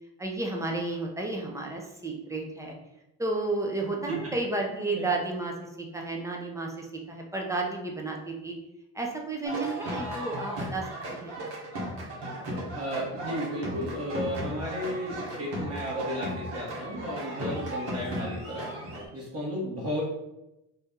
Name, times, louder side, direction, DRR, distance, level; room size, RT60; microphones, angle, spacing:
voice 1, 0.2-2.8 3.2-8.5 8.9-10.8 11.1-11.3 17.4-17.6, right 2 dB, 5° right, 0 dB, 0.8 m, -32 dB
sound 1, 9.4-19.1, right 1 dB, 70° right, 1.3 m, -35 dB
voice 2, 12.7-18.7 19.1-20.0, equal, 35° right, -4 dB, 1.3 m, -34 dB
3.0 x 2.6 x 3.7 m, 0.90 s
hypercardioid pair, 60°, 43 cm